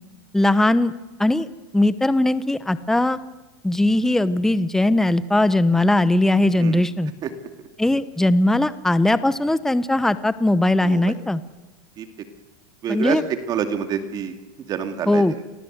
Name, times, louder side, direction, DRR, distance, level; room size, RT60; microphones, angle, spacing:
voice 1, 0.3-0.9 1.2-1.5 1.7-3.2 3.6-7.1 7.8-11.4 12.9-13.2 15.1-15.3, left 1 dB, 5° left, 14 dB, 0.9 m, -19 dB
voice 2, 10.8-11.2 12.0-12.1 12.8-14.4 14.7-15.2, right 8 dB, 35° right, 7 dB, 2.5 m, -27 dB
28.5 x 21.5 x 8.1 m, 1.2 s
supercardioid pair, 125°, 11 cm